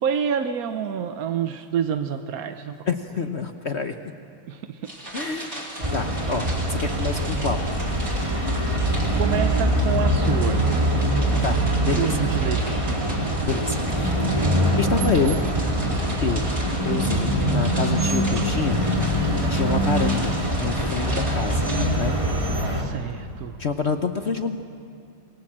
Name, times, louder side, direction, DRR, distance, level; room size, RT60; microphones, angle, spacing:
voice 1, 0.0-2.8 4.5-4.8 9.1-10.7 12.0-12.8 22.8-23.6, right 8 dB, 60° right, 8 dB, 0.9 m, -28 dB
voice 2, 2.9-4.0 5.1-5.6 5.9-7.7 11.4-12.1 13.4-14.5 14.7-15.5 16.2-16.5 16.8-22.2 23.6-24.6, left 4 dB, 60° left, 7 dB, 0.7 m, -28 dB
sound 1, 4.8-21.9, right 1 dB, 30° right, 4.0 m, -38 dB
sound 2, 5.8-22.8, right 1 dB, 15° right, 2.5 m, -23 dB
27.0 x 22.5 x 7.4 m, 2.3 s
omnidirectional pair, 2.3 m